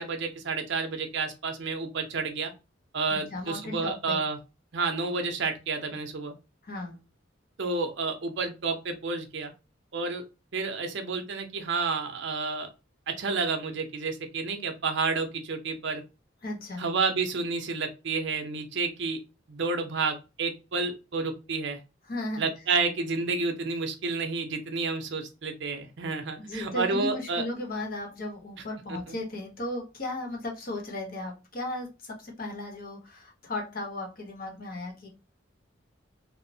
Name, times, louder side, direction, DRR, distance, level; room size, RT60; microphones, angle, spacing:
voice 1, 0.0-2.5 2.9-4.4 4.7-6.3 7.6-9.5 9.9-10.2 10.5-12.7 13.1-16.0 16.8-19.2 19.5-21.8 22.4-27.4 28.9-29.1, right 4 dB, 65° right, 4 dB, 0.6 m, -30 dB
voice 2, 3.1-4.2 6.6-7.0 16.4-16.9 22.1-22.5 26.4-35.1, left 2 dB, 50° left, 1 dB, 0.8 m, -36 dB
3.0 x 2.0 x 2.6 m, 0.29 s
head